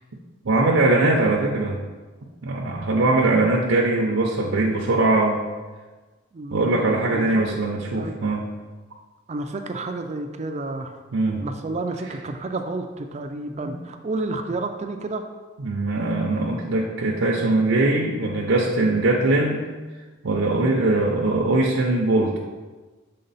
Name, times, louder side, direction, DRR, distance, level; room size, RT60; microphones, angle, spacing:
voice 1, 0.4-1.8 2.4-5.4 6.5-8.4 11.1-11.4 13.6-13.8 15.6-19.6 20.2-22.4, right 2 dB, 80° right, -2 dB, 0.6 m, -21 dB
voice 2, 6.3-7.6 8.0-8.1 9.3-10.9 11.4-15.2, right 2 dB, 35° right, 6 dB, 0.4 m, -30 dB
6.6 x 3.8 x 4.1 m, 1.3 s
head